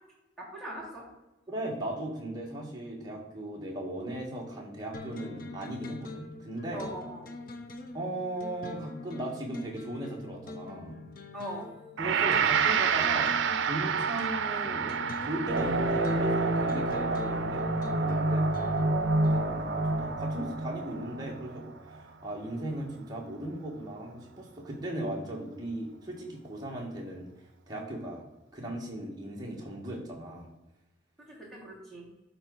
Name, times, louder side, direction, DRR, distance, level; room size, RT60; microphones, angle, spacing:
voice 1, 0.4-1.1 6.7-7.3 11.3-11.7 31.2-32.1, right 1 dB, ahead, -6 dB, 3.0 m, -41 dB
voice 2, 1.5-6.9 7.9-11.0 12.0-13.4 13.6-19.0 19.2-27.3 27.7-28.2 28.5-30.5, right 1 dB, 20° right, -2 dB, 1.9 m, -37 dB
sound 1, 4.9-19.7, left 3 dB, 45° left, 0.7 m, -44 dB
Gong, 12.0-21.2, right 7 dB, 85° right, 0.5 m, -31 dB
sound 2, 15.5-21.6, right 1 dB, 65° right, 1.1 m, -28 dB
12.0 x 4.1 x 4.1 m, 1.0 s
head